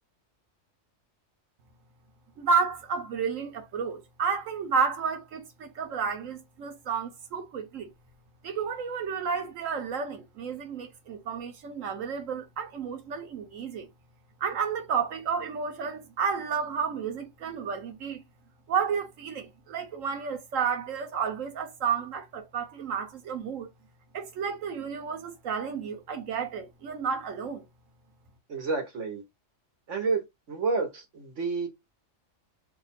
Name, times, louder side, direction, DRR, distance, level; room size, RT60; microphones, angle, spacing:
voice 1, 2.4-7.9 8.4-13.9 14.4-18.2 18.7-23.7 24.1-27.7, right 6 dB, 85° right, 1.2 m, -31 dB
voice 2, 28.5-29.2 29.9-31.7, right 4 dB, 70° right, 1.4 m, -30 dB
2.9 x 2.4 x 4.1 m
omnidirectional pair, 1.3 m